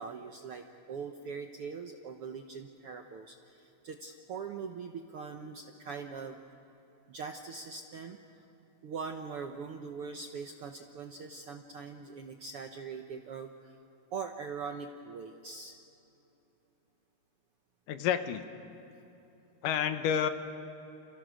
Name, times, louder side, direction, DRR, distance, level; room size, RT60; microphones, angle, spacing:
voice 1, 0.0-6.4 7.1-8.2 8.8-13.8 14.1-15.8 18.8-18.9, right 5 dB, 70° right, 5 dB, 1.4 m, -42 dB
voice 2, 17.9-18.5 19.6-20.3, left 8 dB, 80° left, 9 dB, 2.7 m, -29 dB
29.0 x 28.0 x 6.4 m, 3.0 s
omnidirectional pair, 3.8 m